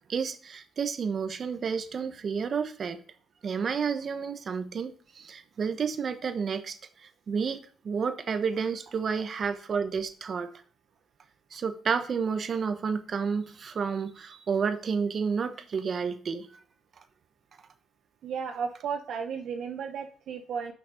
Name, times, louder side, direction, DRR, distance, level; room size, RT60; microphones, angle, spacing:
voice 1, 0.1-3.0 3.4-7.6 7.8-10.5 11.5-16.5, right 6 dB, 50° right, 9 dB, 0.9 m, -30 dB
voice 2, 18.2-20.7, right 6 dB, 70° right, 6 dB, 0.7 m, -34 dB
6.3 x 5.9 x 5.0 m, 0.44 s
cardioid pair, 90°, 0 cm